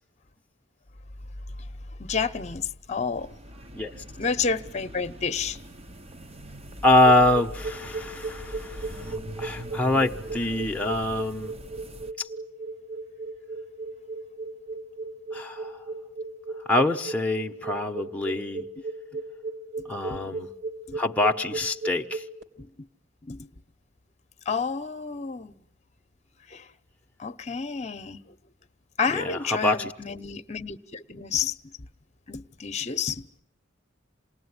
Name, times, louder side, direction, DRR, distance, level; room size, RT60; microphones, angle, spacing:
voice 1, 2.0-3.3 4.2-5.6 19.1-19.2 20.1-20.4 20.9-21.0 22.6-22.9 23.2-23.5 24.5-25.5 26.5-26.7 27.2-28.2 29.0-31.7 32.3-33.4, left 5 dB, 35° left, 1.0 m, -30 dB
sound 1, 3.1-12.1, equal, 35° right, 1.1 m, -42 dB
voice 2, 6.8-11.5 12.2-12.3 15.3-15.8 16.7-18.6 19.9-20.5 20.9-22.3 29.1-29.9, left 1 dB, 10° left, 1.0 m, -25 dB
sound 2, 7.0-22.4, right 3 dB, 65° right, 3.2 m, -35 dB
27.5 x 19.5 x 9.7 m
head